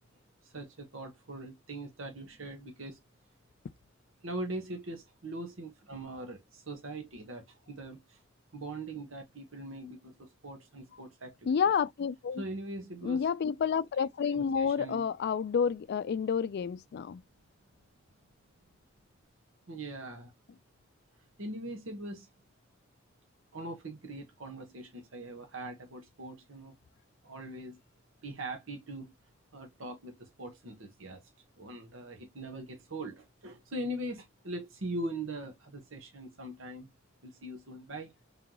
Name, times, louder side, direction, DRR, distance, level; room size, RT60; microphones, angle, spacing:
voice 1, 0.4-3.0 4.2-8.2 8.5-11.5 12.4-13.2 14.3-15.0 19.7-20.3 21.4-22.3 23.5-26.8 27.2-27.8 28.2-29.1 29.5-31.2 31.6-36.9 37.2-38.1, right 1 dB, 85° right, 1.1 m, -41 dB
voice 2, 11.5-12.4 13.0-17.2, left 6 dB, 55° left, 0.3 m, -29 dB
3.8 x 3.5 x 2.9 m
head